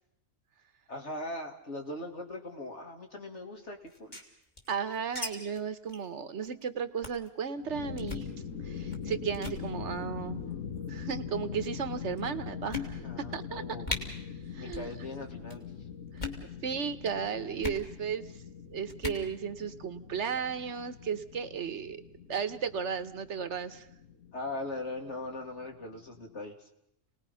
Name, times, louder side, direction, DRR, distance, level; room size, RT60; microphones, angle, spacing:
voice 1, 0.9-4.2 10.5-11.0 13.0-13.9 14.5-15.6 24.3-26.5, left 2 dB, 60° left, 2 dB, 3.1 m, -40 dB
sound 1, 3.9-5.3 5.5-5.6 5.9-6.1 6.4-6.6 7.0-7.3 8.0-8.3 8.9-9.1 9.3-9.6 10.5-10.9 11.6-11.7 12.2-12.3 12.7-13.3 13.5-13.6 13.8-14.0 14.7-14.9 15.2-15.6 16.1-16.4 17.6-17.8 18.9-19.2, left 3 dB, 35° left, 3.0 m, -38 dB
voice 2, 4.7-8.3 8.6-10.4 10.9-13.0 13.3-13.6 14.5-14.9 16.6-18.2 18.7-22.0 22.3-23.9, right 6 dB, 65° right, 11 dB, 1.4 m, -34 dB
sound 2, 7.6-26.4, left 7 dB, 85° left, 1.9 m, -42 dB
29.5 x 19.5 x 5.7 m, 0.77 s
omnidirectional pair, 1.3 m